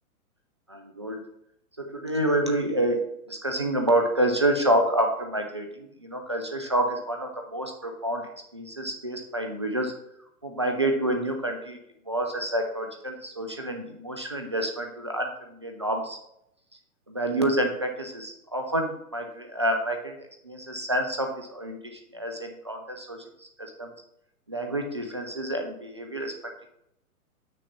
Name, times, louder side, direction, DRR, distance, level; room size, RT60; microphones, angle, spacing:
voice 1, 0.7-1.2 1.8-9.9 10.4-11.8 12.1-16.2 17.1-20.2 20.4-23.9 24.5-26.3, right 1 dB, 20° right, 4 dB, 0.3 m, -28 dB
6.8 x 6.0 x 4.3 m, 0.78 s
hypercardioid pair, 130°, 45 cm